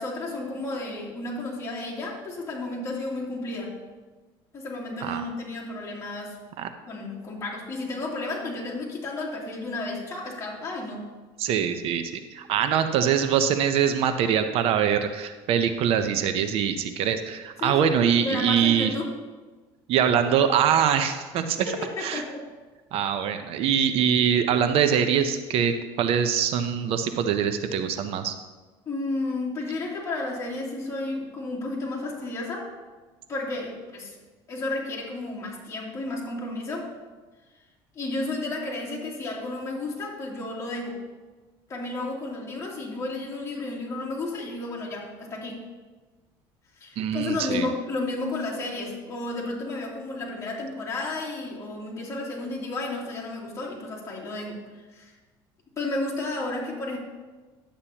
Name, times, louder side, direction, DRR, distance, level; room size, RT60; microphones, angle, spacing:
voice 1, 0.0-3.8 4.5-6.4 6.9-11.1 17.6-19.1 21.6-22.5 28.9-32.7 33.3-34.1 34.5-36.9 37.9-41.0 41.7-45.6 46.8-55.1 55.8-57.0, left 2 dB, 30° left, -5 dB, 2.9 m, -32 dB
voice 2, 11.4-18.9 19.9-21.7 22.0-22.2 22.9-28.3 47.0-47.7, right 8 dB, 60° right, 8 dB, 0.7 m, -23 dB
11.5 x 8.5 x 2.9 m, 1.3 s
cardioid pair, 115°, 11 cm